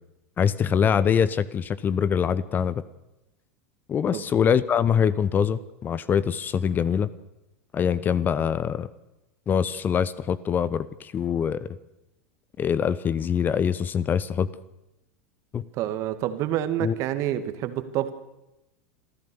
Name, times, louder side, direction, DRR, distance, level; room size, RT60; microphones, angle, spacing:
voice 1, 0.4-2.8 3.9-7.1 7.7-8.9 9.5-11.7 12.6-14.5 15.5-15.6 16.8-16.9, left 7 dB, 25° left, 18 dB, 0.7 m, -24 dB
voice 2, 15.7-18.1, right 12 dB, 45° right, 11 dB, 1.9 m, -28 dB
26.5 x 14.0 x 7.0 m, 0.93 s
figure-of-eight pair, 85°, 7 cm